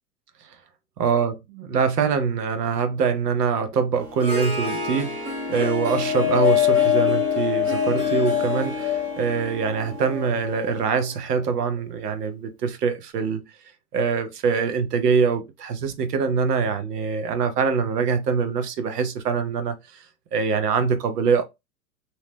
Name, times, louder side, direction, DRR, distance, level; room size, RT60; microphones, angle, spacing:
voice 1, 1.0-13.4 13.9-20.0 20.3-21.4, right 6 dB, 85° right, 0.8 m, -24 dB
Harp, 4.0-11.1, left 2 dB, 15° right, 0.3 m, -31 dB
Wind, 5.9-9.4 10.0-11.0 11.8-11.9, left 13 dB, 30° left, 0.6 m, -23 dB
2.8 x 2.1 x 3.2 m
hypercardioid pair, 120°, 46 cm